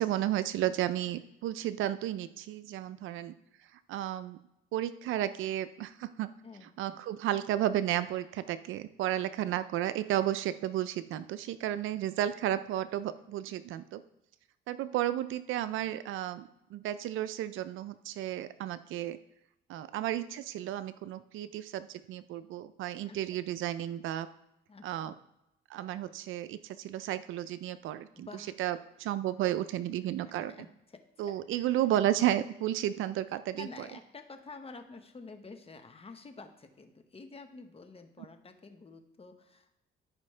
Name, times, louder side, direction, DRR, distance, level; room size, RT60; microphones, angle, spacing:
voice 1, 0.0-3.3 3.9-4.4 4.7-6.3 6.8-14.0 14.7-19.2 19.7-24.3 24.8-25.1 25.7-28.3 28.6-30.5 31.2-33.7, right 12 dB, 85° right, 14 dB, 0.5 m, -33 dB
voice 2, 6.4-6.9 9.4-9.5 12.9-13.0 21.4-21.5 23.1-23.4 24.7-25.1 28.3-28.5 29.4-29.5 30.2-31.8 33.5-39.8, left 3 dB, 30° left, 6 dB, 1.1 m, -50 dB
13.5 x 5.2 x 3.3 m, 0.85 s
cardioid pair, 90°, 20 cm